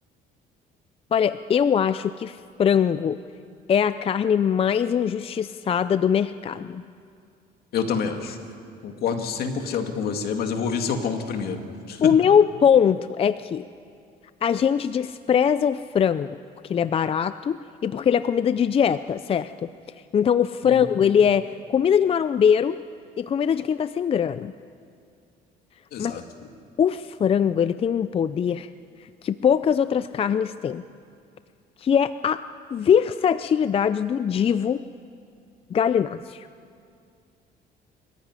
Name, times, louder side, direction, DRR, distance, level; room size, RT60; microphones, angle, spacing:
voice 1, 1.1-3.2 3.7-6.8 12.0-13.6 14.4-16.4 16.7-19.7 20.1-21.4 21.7-22.8 23.2-24.5 26.0-26.1 26.8-28.7 29.2-30.8 31.8-32.4 32.7-34.8 35.7-36.5, left 8 dB, 35° left, 13 dB, 0.5 m, -22 dB
voice 2, 7.7-8.4 8.8-11.6 11.9-12.1 20.6-21.0 25.9-26.2, left 6 dB, 65° left, 5 dB, 2.4 m, -27 dB
25.5 x 14.5 x 9.7 m, 2.4 s
cardioid pair, 110°, 17 cm